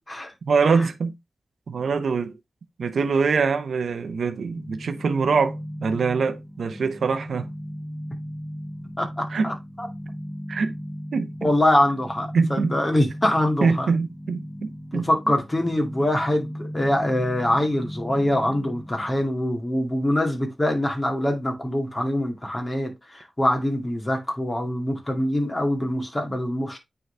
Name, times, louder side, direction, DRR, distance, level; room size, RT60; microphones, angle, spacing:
voice 1, 0.4-1.1 1.7-2.3 2.8-7.5 9.3-9.5 10.5-10.7 11.1-11.5 12.3-12.7 13.6-15.0, right 5 dB, 90° right, 0.7 m, -24 dB
sound 1, 4.5-19.3, equal, 10° right, 1.6 m, -36 dB
voice 2, 9.0-9.9 11.4-13.9 14.9-26.8, left 1 dB, 25° left, 2.1 m, -24 dB
9.1 x 4.0 x 3.2 m
wide cardioid pair, 105°, 0 cm